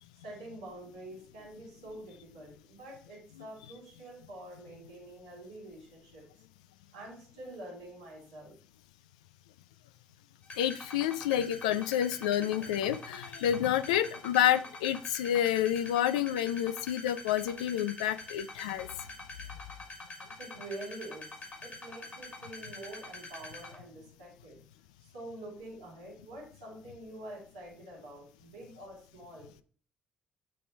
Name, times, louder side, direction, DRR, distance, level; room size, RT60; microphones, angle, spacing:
voice 1, 0.2-6.2 6.9-8.5 20.4-21.3 21.6-24.6 25.0-29.5, right 1 dB, 90° right, -2 dB, 2.9 m, -46 dB
sound 1, 10.4-23.8, left 2 dB, 45° left, 3.6 m, -45 dB
voice 2, 10.6-18.9, left 11 dB, 80° left, 14 dB, 0.3 m, -29 dB
8.5 x 3.3 x 4.5 m, 0.42 s
hypercardioid pair, 45°, 4 cm